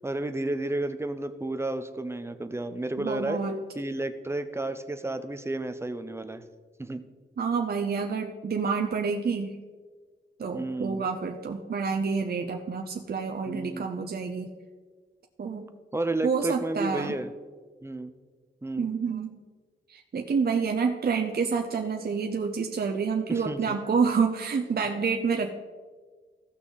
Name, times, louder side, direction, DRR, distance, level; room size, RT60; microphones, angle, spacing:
voice 1, 0.0-3.4 3.7-6.4 6.8-7.1 10.5-11.1 13.5-13.9 15.9-17.3 17.8-18.1 18.6-18.9 23.3-23.8, right 2 dB, 15° right, 10 dB, 0.6 m, -32 dB
voice 2, 3.0-3.6 7.4-9.6 10.4-14.5 15.4-15.7 16.2-17.2 18.8-19.4 19.9-25.5, right 5 dB, 55° right, 3 dB, 0.7 m, -28 dB
16.0 x 6.1 x 3.9 m, 1.5 s
wide cardioid pair, 155°, 19 cm